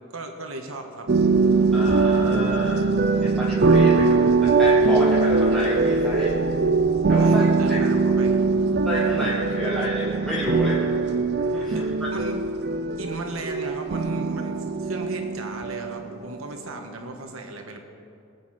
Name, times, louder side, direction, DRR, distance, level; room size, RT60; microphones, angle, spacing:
voice 1, 0.1-1.1 7.2-8.4 11.7-11.8 12.1-12.5 13.0-17.8, right 2 dB, 80° right, 4 dB, 1.5 m, -36 dB
sound 1, 1.1-16.2, right 4 dB, 50° right, 0.5 m, -21 dB
voice 2, 1.7-2.8 3.2-6.4 7.1-7.8 8.8-11.0 11.4-12.1, equal, 5° left, -7 dB, 1.3 m, -30 dB
20.0 x 8.6 x 4.3 m, 2.5 s
head